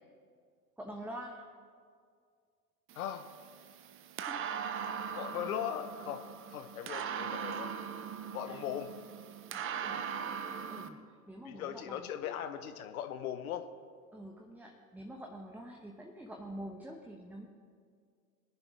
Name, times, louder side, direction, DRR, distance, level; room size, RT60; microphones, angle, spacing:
voice 1, 0.8-1.4 4.2-4.4 8.4-8.6 9.5-10.0 10.7-12.1 14.1-17.5, right 1 dB, 5° right, 1 dB, 0.9 m, -46 dB
voice 2, 2.9-3.3 5.1-7.7 8.3-8.9 11.4-13.7, left 10 dB, 65° left, 9 dB, 0.9 m, -39 dB
sound 1, 2.9-10.9, right 7 dB, 25° right, 0.7 m, -40 dB
22.0 x 10.0 x 3.2 m, 2.1 s
figure-of-eight pair, 85°, 47 cm